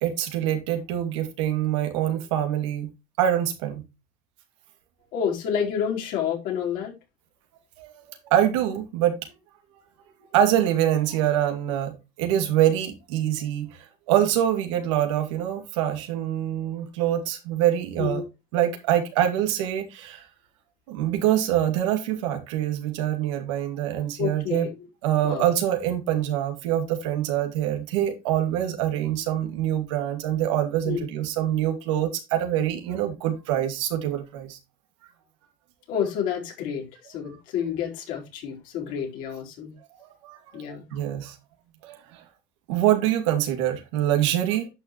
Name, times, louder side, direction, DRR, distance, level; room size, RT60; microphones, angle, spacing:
voice 1, 0.0-2.9 3.2-3.8 7.8-9.2 10.3-18.2 18.5-20.2 20.9-24.7 25.0-34.6 40.2-41.4 41.8-42.2 42.7-44.7, right 11 dB, 90° right, 2.5 m, -25 dB
voice 2, 5.1-6.9 18.0-18.2 24.2-24.9 25.2-25.5 30.8-31.1 35.9-39.7 40.5-40.9, left 8 dB, 65° left, 4.3 m, -29 dB
10.5 x 6.4 x 3.1 m
supercardioid pair, 115°, 15 cm